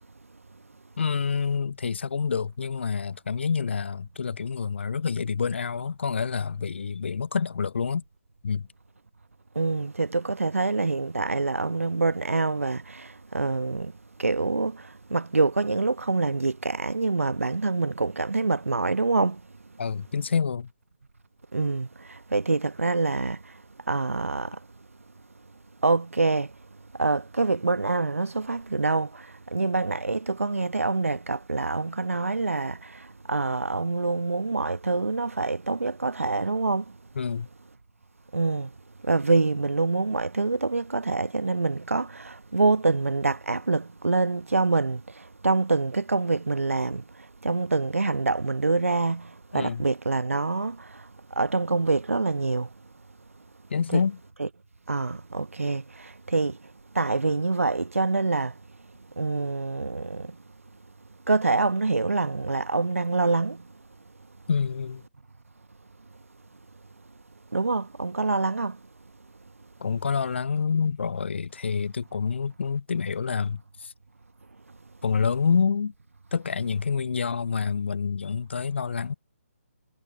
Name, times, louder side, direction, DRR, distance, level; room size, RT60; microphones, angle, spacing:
voice 1, 1.0-8.0 8.4-8.7 19.8-20.7 37.2-37.5 49.5-49.8 53.7-54.2 64.5-65.0 69.8-73.9 75.0-75.9 76.3-79.1, left 6 dB, 50° left, 0.4 m, -27 dB
voice 2, 9.5-13.9 14.2-19.4 21.5-23.4 23.9-24.6 25.8-26.5 27.0-36.8 38.3-38.7 39.0-47.0 47.4-51.0 51.4-52.7 53.9-54.1 54.4-54.5 54.9-56.6 56.9-58.5 59.2-60.4 61.3-63.6 67.5-68.8, right 3 dB, 70° right, 1.1 m, -26 dB
figure-of-eight pair, 145°, 8 cm